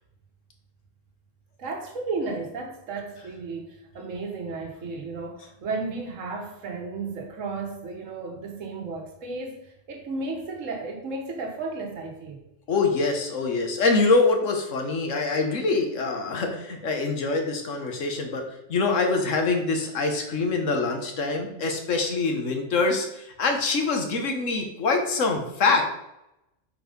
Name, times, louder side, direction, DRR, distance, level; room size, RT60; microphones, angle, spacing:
voice 1, 1.6-12.4, right 3 dB, 75° right, 1.5 m, -34 dB
voice 2, 12.7-25.9, left 3 dB, 70° left, 1.6 m, -24 dB
7.2 x 4.5 x 5.3 m
omnidirectional pair, 1.3 m